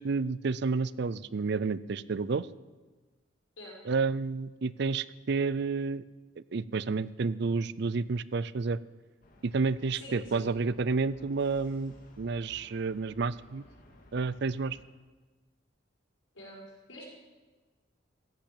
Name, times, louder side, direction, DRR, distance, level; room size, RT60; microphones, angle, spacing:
voice 1, 0.0-2.5 3.9-6.0 6.4-8.8 9.4-13.6 14.1-14.8, right 4 dB, 60° right, 19 dB, 0.5 m, -30 dB
sound 1, 9.2-14.8, left 1 dB, 45° left, 2.4 m, -57 dB
voice 2, 9.9-10.6 16.3-17.1, equal, 85° left, -2 dB, 5.3 m, -46 dB
14.5 x 10.5 x 8.8 m, 1.3 s
head